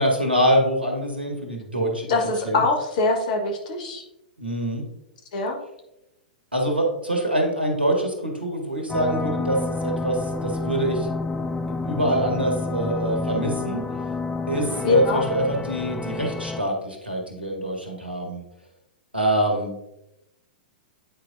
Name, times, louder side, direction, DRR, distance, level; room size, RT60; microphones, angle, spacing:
voice 1, 0.0-2.1 2.4-2.6 4.4-4.8 6.5-11.1 11.8-13.8 14.5-18.4 19.1-19.7, right 1 dB, 90° right, 1 dB, 1.4 m, -24 dB
voice 2, 2.1-4.0 5.3-5.6 14.8-15.2, left 4 dB, 55° left, 2 dB, 1.3 m, -23 dB
sound 1, 8.9-16.6, left 3 dB, 10° left, 0.3 m, -29 dB
8.6 x 4.6 x 2.6 m, 0.90 s
figure-of-eight pair, 105°, 5 cm